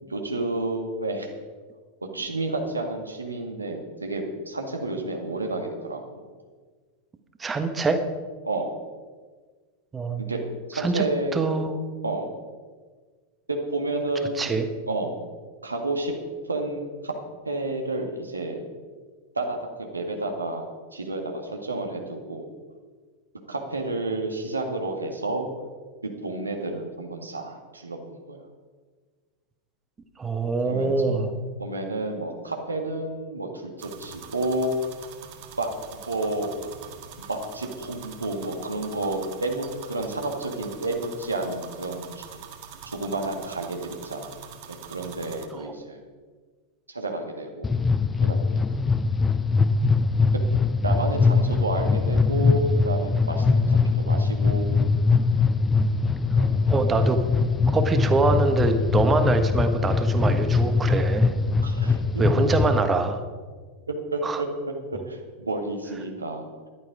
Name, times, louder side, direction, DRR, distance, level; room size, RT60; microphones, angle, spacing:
voice 1, 0.1-1.3 2.1-6.2 8.4-8.7 10.3-10.4 10.7-11.6 12.0-12.3 13.5-14.5 14.9-15.2 15.6-16.1 16.5-17.1 17.5-18.7 19.3-22.5 23.5-25.5 26.0-28.4 30.6-31.3 31.6-34.7 35.6-36.5 37.3-42.4 42.9-44.3 44.7-46.0 46.9-47.7 48.2-48.6 50.8-54.8 56.3-56.7 61.6-62.5 63.9-64.5 64.9-66.5, right 2 dB, 80° right, 3 dB, 1.9 m, -30 dB
voice 2, 7.4-8.0 9.9-10.3 10.7-11.0 11.3-11.8 14.4-14.7 30.2-31.3 45.5-45.7 56.7-57.2 57.7-61.3 62.2-63.2 64.2-64.4, right 3 dB, 15° right, 8 dB, 1.4 m, -24 dB
sound 1, 33.8-45.5, right 8 dB, 50° right, 1.6 m, -43 dB
sound 2, 47.6-62.8, left 4 dB, 15° left, 0.6 m, -22 dB
14.0 x 11.5 x 4.9 m, 1.5 s
figure-of-eight pair, 90°, 0 cm